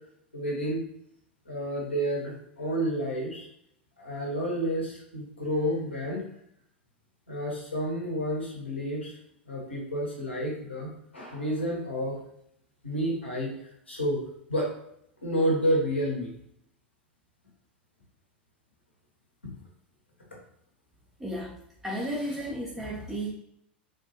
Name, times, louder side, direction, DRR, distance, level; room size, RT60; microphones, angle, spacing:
voice 1, 0.3-0.8 1.5-3.5 4.0-6.2 7.3-9.1 9.5-12.2 12.8-13.5 13.9-14.2 14.5-14.7 15.2-16.3, equal, 85° left, -3 dB, 1.3 m, -30 dB
voice 2, 21.2-21.6 21.8-23.3, equal, 5° right, -6 dB, 0.7 m, -33 dB
4.0 x 2.6 x 2.8 m, 0.73 s
figure-of-eight pair, 90°, 6 cm